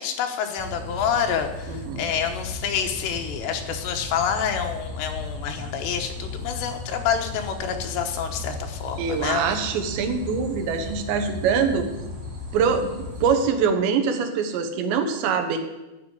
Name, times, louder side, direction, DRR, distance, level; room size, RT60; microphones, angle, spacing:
voice 1, 0.0-9.6, left 7 dB, 80° left, 4 dB, 3.3 m, -28 dB
sound 1, 0.6-13.4, left 2 dB, 40° right, 4.0 m, -36 dB
voice 2, 1.7-2.1 9.0-11.9 12.5-15.6, right 6 dB, 80° right, 6 dB, 3.4 m, -24 dB
12.5 x 6.4 x 8.2 m, 1.0 s
omnidirectional pair, 5.0 m